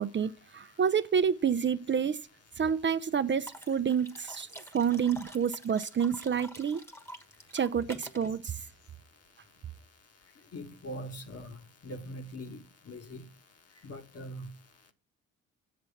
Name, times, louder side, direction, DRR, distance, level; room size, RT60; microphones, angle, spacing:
voice 1, 0.0-2.2 2.6-4.5 4.7-6.8 7.5-8.6, right 7 dB, 35° right, 0.5 m, -28 dB
sound 1, 2.7-2.9 3.5-8.3, equal, 10° left, 1.2 m, -48 dB
voice 2, 10.5-11.6 11.8-13.3 13.8-14.5, equal, 50° left, 1.5 m, -42 dB
7.6 x 5.9 x 7.1 m
supercardioid pair, 50°, 32 cm